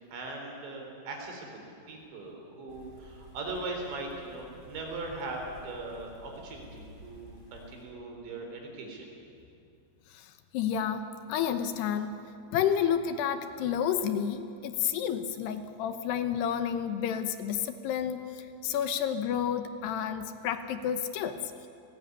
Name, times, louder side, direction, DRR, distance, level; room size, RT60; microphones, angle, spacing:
voice 1, 0.1-9.1, right 2 dB, 75° right, 2 dB, 6.4 m, -40 dB
sound 1, 2.7-7.8, left 1 dB, 25° left, 4.5 m, -52 dB
voice 2, 10.1-12.2 12.5-21.7, left 8 dB, 75° left, 9 dB, 2.9 m, -30 dB
28.0 x 19.0 x 9.6 m, 2.5 s
omnidirectional pair, 5.2 m